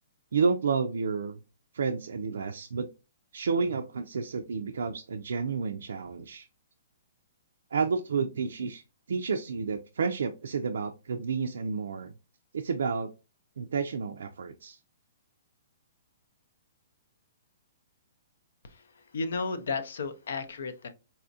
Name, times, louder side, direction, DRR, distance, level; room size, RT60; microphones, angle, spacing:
voice 1, 0.3-1.4 1.7-2.9 3.3-6.5 7.7-8.8 9.1-12.1 12.5-13.1 13.6-14.8, right 5 dB, 85° right, 0.3 m, -30 dB
voice 2, 18.6-20.9, left 4 dB, 75° left, 0.6 m, -34 dB
4.1 x 2.4 x 2.6 m
hypercardioid pair, 155°, 0 cm